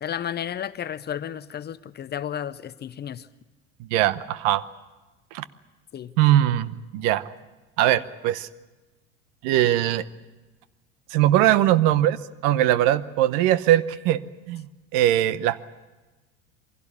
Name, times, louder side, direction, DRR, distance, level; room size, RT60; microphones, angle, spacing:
voice 1, 0.0-3.3 5.9-6.1, left 9 dB, 25° left, 15 dB, 0.6 m, -32 dB
voice 2, 3.9-4.6 5.3-5.4 6.2-7.3 7.8-8.5 9.4-10.0 11.1-12.2 12.4-14.2 14.5-15.6, right 13 dB, 55° right, 16 dB, 1.0 m, -21 dB
23.5 x 16.5 x 9.7 m, 1.2 s
hypercardioid pair, 80°, 38 cm